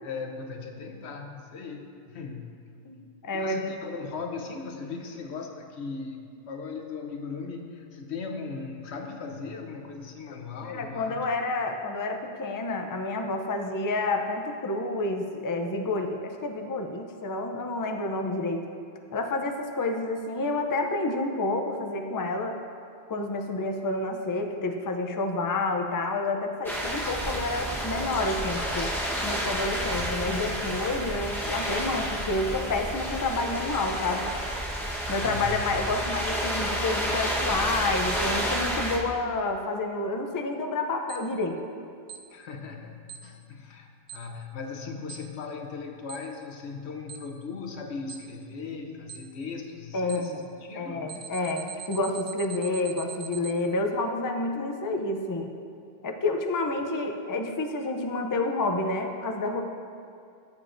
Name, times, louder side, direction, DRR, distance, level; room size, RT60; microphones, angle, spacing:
voice 1, 0.0-2.6 3.3-11.3 35.2-35.7 42.3-51.1, left 4 dB, 85° left, 3 dB, 1.1 m, -38 dB
voice 2, 2.9-3.6 10.7-18.6 19.1-22.6 23.1-28.9 29.2-34.3 35.1-41.6 49.9-50.4 50.8-55.5 56.0-59.6, left 2 dB, 30° left, 4 dB, 0.4 m, -29 dB
sound 1, 26.6-39.0, equal, ahead, 1.0 m, -30 dB
Alarm, 41.1-41.2 42.1-42.2 43.1-43.2 44.1-44.2 45.1-45.2 46.1-46.2 47.1-47.2 48.1-48.2 49.1-49.2 50.1-50.2 51.1-53.5, right 9 dB, 60° right, 0.8 m, -40 dB
14.5 x 7.2 x 2.6 m, 2.4 s
omnidirectional pair, 1.1 m